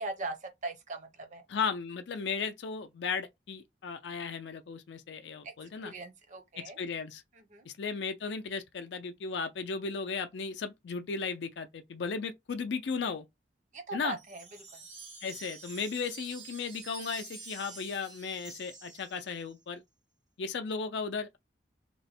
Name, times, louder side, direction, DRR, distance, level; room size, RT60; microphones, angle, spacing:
voice 1, 0.0-1.4 5.4-5.5 5.8-6.8 7.3-7.7 13.7-14.8, right 2 dB, 40° right, 0.6 m, -40 dB
voice 2, 1.5-5.9 6.8-7.2 7.7-13.3 13.9-14.2 15.2-19.8 20.4-21.4, left 5 dB, 70° left, 0.4 m, -35 dB
Wind chime, 14.2-19.5, right 4 dB, 90° right, 1.5 m, -48 dB
3.0 x 2.1 x 4.1 m
head